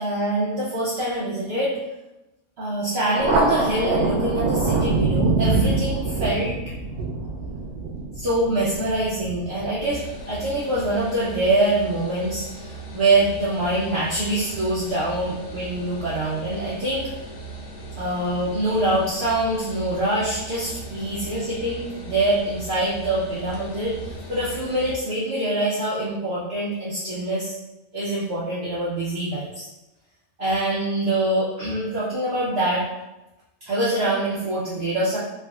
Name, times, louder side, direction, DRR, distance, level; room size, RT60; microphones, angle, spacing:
voice 1, 0.0-1.8 2.6-6.5 8.2-17.1 18.0-27.6 27.9-29.7 30.4-32.9 33.7-35.2, right 1 dB, 60° right, -7 dB, 0.7 m, -24 dB
Thunder, 3.2-10.2, right 3 dB, 90° right, 1.1 m, -24 dB
sound 1, 9.9-25.0, right 3 dB, 85° left, 0.5 m, -38 dB
3.5 x 2.4 x 2.3 m, 0.98 s
omnidirectional pair, 1.6 m